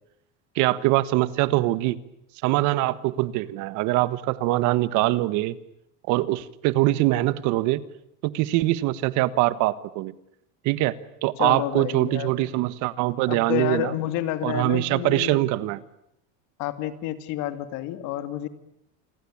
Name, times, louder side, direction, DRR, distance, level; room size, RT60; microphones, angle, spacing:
voice 1, 0.5-2.0 2.4-5.6 6.1-7.8 8.2-10.1 10.6-10.9 11.2-13.9 14.4-15.8, right 17 dB, 50° right, 16 dB, 1.5 m, -23 dB
voice 2, 11.4-12.4 13.3-15.4 16.6-18.5, left 13 dB, 50° left, 11 dB, 2.6 m, -29 dB
29.0 x 21.5 x 8.7 m, 0.78 s
cardioid pair, 165°, 37 cm